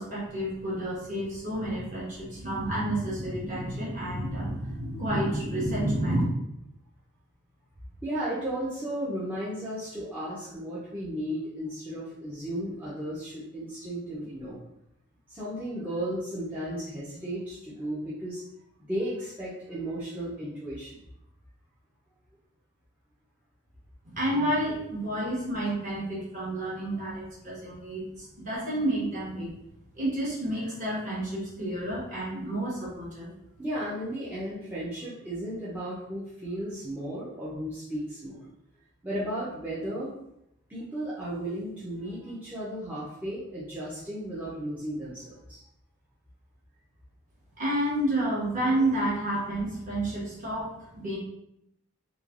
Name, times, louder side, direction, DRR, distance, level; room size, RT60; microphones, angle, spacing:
voice 1, 0.0-6.2 24.0-29.5 30.0-33.3 47.6-51.2, right 1 dB, 35° right, -7 dB, 1.0 m, -30 dB
voice 2, 8.0-14.6 15.3-18.4 18.8-21.0 33.6-38.5 39.0-40.1 40.7-45.6, right 1 dB, 10° right, -11 dB, 0.5 m, -34 dB
3.1 x 2.2 x 2.4 m, 0.82 s
head